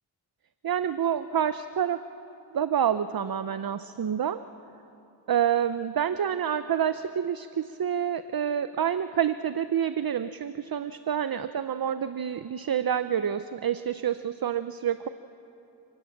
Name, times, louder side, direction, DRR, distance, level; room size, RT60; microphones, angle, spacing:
voice 1, 0.6-2.0 2.5-4.4 5.3-15.1, right 9 dB, 50° right, 12 dB, 0.6 m, -28 dB
28.5 x 19.0 x 7.2 m, 2.9 s
cardioid pair, 55°, 47 cm